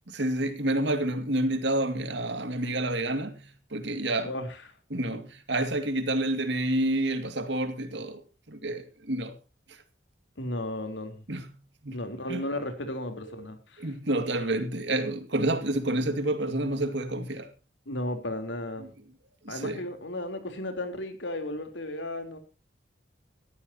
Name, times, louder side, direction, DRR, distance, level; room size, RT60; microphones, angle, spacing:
voice 1, 0.1-4.3 4.9-8.2 8.5-9.4 9.7-9.8 11.3-12.0 12.3-12.5 13.2-13.5 13.8-17.5 18.8-18.9 19.4-19.8, right 1 dB, 70° right, 2.3 m, -29 dB
voice 2, 10.4-11.2 11.9-13.9 17.9-18.9 19.5-22.4, left 1 dB, 80° left, 3.6 m, -34 dB
19.0 x 14.0 x 2.9 m
head